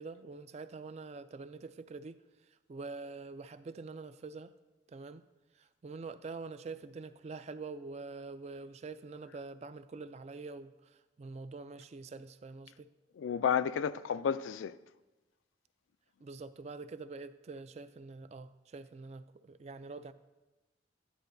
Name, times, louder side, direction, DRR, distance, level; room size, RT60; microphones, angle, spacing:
voice 1, 0.0-2.2 2.5-4.5 4.9-5.2 5.5-12.9 16.2-20.1, right 3 dB, 35° right, 0.3 m, -45 dB
voice 2, 13.2-14.8, left 7 dB, 80° left, 0.3 m, -31 dB
13.0 x 10.0 x 2.6 m
head